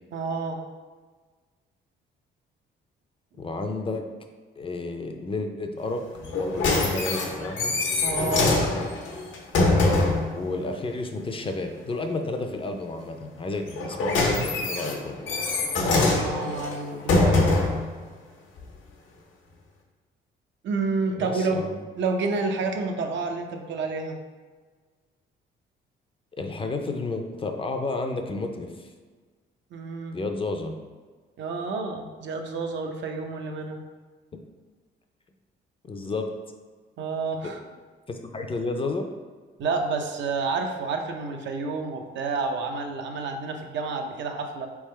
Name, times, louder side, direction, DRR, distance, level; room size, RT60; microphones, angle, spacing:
voice 1, 0.1-0.6 8.0-8.6 15.8-17.5 20.6-21.6 22.0-24.2 29.7-30.2 31.4-33.8 37.0-37.6 39.6-44.7, right 4 dB, 65° right, 4 dB, 0.6 m, -29 dB
voice 2, 3.4-4.0 4.6-6.0 6.3-7.7 10.3-15.2 21.2-21.8 26.4-28.9 30.1-30.7 35.8-36.3 37.4-37.5 38.1-39.1, left 3 dB, 25° left, 5 dB, 0.5 m, -31 dB
sound 1, 6.2-10.3 13.7-17.8 18.6-18.7, left 2 dB, 75° left, 0.9 m, -23 dB
4.3 x 3.5 x 3.2 m, 1.4 s
cardioid pair, 90°, 20 cm